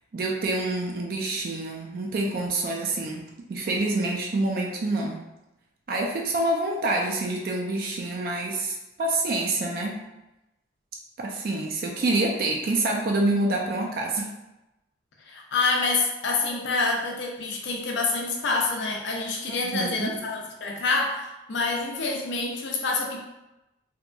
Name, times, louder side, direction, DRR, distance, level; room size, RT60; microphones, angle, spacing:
voice 1, 0.1-5.2 5.9-10.0 11.2-14.3 19.5-20.2, right 2 dB, 50° right, 0 dB, 0.3 m, -27 dB
voice 2, 15.3-23.2, left 3 dB, 75° left, 1 dB, 0.5 m, -27 dB
2.8 x 2.5 x 2.2 m, 0.96 s
head